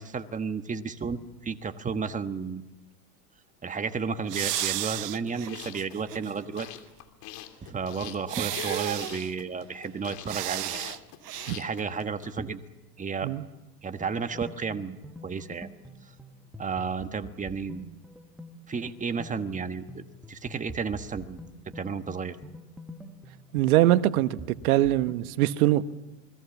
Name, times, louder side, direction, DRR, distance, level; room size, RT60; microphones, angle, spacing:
voice 1, 0.0-2.6 3.6-6.7 7.6-11.0 11.5-12.6 13.0-13.3 13.8-15.0 15.2-15.7 16.6-17.9 18.7-20.0 20.3-21.4 21.7-22.4, right 5 dB, 15° right, 1.4 m, -32 dB
sound 1, 4.2-12.3, left 13 dB, 50° left, 2.9 m, -44 dB
sound 2, 4.3-6.3 6.7-6.8 8.3-9.3 10.3-11.0 11.2-11.5, right 14 dB, 85° right, 0.9 m, -33 dB
sound 3, 14.0-25.3, equal, ahead, 1.5 m, -46 dB
voice 2, 23.5-24.4 24.6-25.9, right 14 dB, 65° right, 1.3 m, -22 dB
28.5 x 21.0 x 7.2 m
hypercardioid pair, 110°, 46 cm